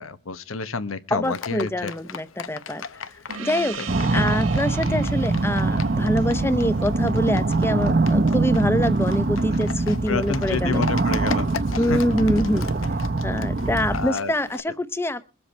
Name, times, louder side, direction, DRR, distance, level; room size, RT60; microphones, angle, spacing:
voice 1, 0.0-1.9 3.8-3.9 4.1-4.2 4.9-5.0 10.1-11.5 11.9-12.0 13.9-14.3, left 3 dB, 90° left, 1.1 m, -29 dB
voice 2, 1.1-2.8 3.4-3.8 4.1-10.8 11.8-12.7 13.2-15.2, left 1 dB, 10° left, 0.7 m, -25 dB
Livestock farm animals working animals, 1.2-14.6, left 6 dB, 75° left, 0.7 m, -38 dB
Gong, 3.3-8.3, right 6 dB, 90° right, 1.9 m, -40 dB
sound 1, 3.9-14.1, right 3 dB, 50° right, 0.7 m, -23 dB
22.5 x 7.7 x 4.4 m
head